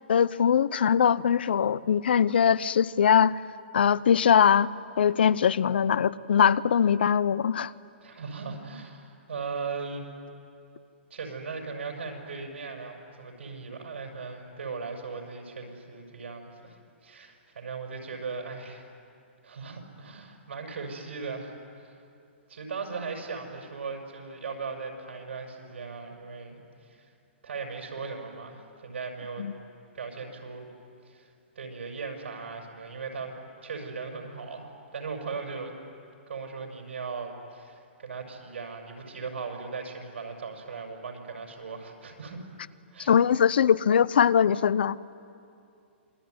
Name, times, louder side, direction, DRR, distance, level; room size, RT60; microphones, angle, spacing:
voice 1, 0.1-3.4 3.7-7.7 29.4-29.5 43.1-45.0, left 8 dB, 60° left, 19 dB, 0.6 m, -22 dB
voice 2, 8.0-10.0 11.1-16.8 17.0-18.8 19.4-22.0 22.5-27.0 27.4-29.5 29.9-30.7 31.0-31.3 31.5-33.3 33.6-35.7 36.3-42.4 42.9-43.1, right 4 dB, 85° right, 2 dB, 6.4 m, -38 dB
27.5 x 21.5 x 9.6 m, 2.5 s
hypercardioid pair, 180°, 6 cm